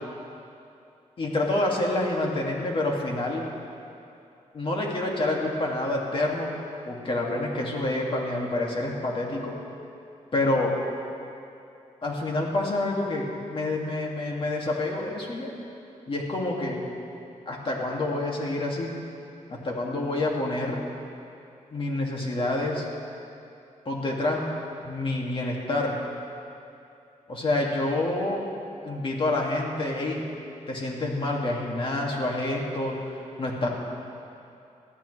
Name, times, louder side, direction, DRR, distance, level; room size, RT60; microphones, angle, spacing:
voice 1, 1.2-3.4 4.5-6.6 6.9-9.6 10.3-10.8 12.0-15.5 16.1-16.8 17.5-18.9 19.5-20.8 21.7-22.8 23.9-24.4 24.8-26.0 27.3-28.4 28.8-30.2 30.7-33.7, left 2 dB, 45° left, -2 dB, 2.5 m, -27 dB
20.5 x 14.0 x 3.4 m, 2.7 s
wide cardioid pair, 110°, 13 cm